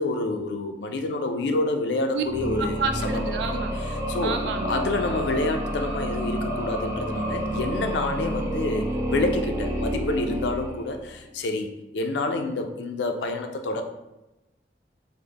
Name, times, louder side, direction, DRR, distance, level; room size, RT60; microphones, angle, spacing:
voice 1, 0.0-3.3 3.7-4.4 4.6-13.8, left 2 dB, 85° left, 6 dB, 0.4 m, -28 dB
sound 1, 2.2-11.3, right 1 dB, 15° right, 0.4 m, -29 dB
voice 2, 2.6-3.7 4.2-4.8, right 4 dB, 85° right, 8 dB, 0.3 m, -29 dB
3.4 x 2.1 x 3.3 m, 0.98 s
head